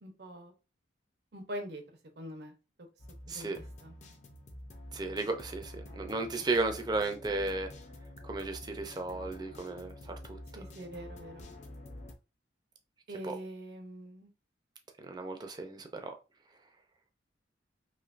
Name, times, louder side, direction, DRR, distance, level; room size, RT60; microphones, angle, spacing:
voice 1, 0.0-0.5 1.3-1.8 2.2-2.5 3.3-3.9 10.5-11.5 13.1-14.3, equal, 60° right, 0.7 m, -43 dB
sound 1, 3.0-12.1, left 1 dB, 40° left, 0.5 m, -48 dB
voice 2, 3.3-3.6 4.9-7.7 8.2-10.4 13.2-13.3 15.0-16.1, right 3 dB, 20° right, 0.5 m, -34 dB
3.1 x 2.7 x 2.4 m
head